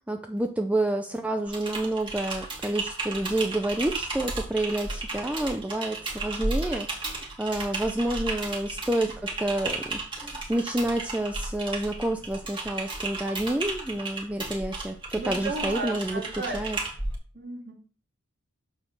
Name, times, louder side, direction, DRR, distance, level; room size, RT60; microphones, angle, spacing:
voice 1, 0.1-16.2 16.5-16.8, right 1 dB, 5° right, 5 dB, 0.4 m, -29 dB
Typing, 1.5-17.1, right 2 dB, 20° right, 2.4 m, -34 dB
voice 2, 15.1-16.6 17.3-17.7, right 3 dB, 45° right, -1 dB, 2.7 m, -34 dB
8.7 x 4.4 x 6.8 m, 0.43 s
head